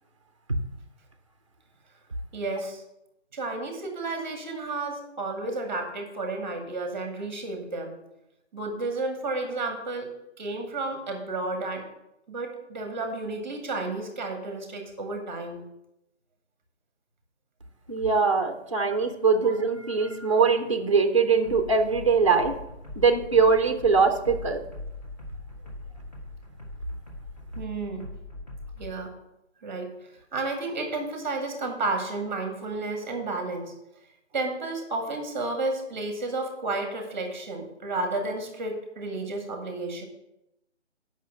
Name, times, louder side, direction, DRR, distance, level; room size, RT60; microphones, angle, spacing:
voice 1, 2.3-2.8 3.3-8.0 8.5-10.1 10.4-11.9 12.3-15.6 18.8-18.9 19.4-19.5 27.5-28.1 28.8-29.1 29.6-33.7 34.3-40.1, right 2 dB, 10° right, 4 dB, 1.0 m, -32 dB
voice 2, 17.9-22.5 23.0-24.6, right 5 dB, 25° right, 6 dB, 0.5 m, -22 dB
sound 1, 21.4-28.9, left 2 dB, 35° left, 1.5 m, -41 dB
8.4 x 5.6 x 6.1 m, 0.86 s
hypercardioid pair, 170°, 36 cm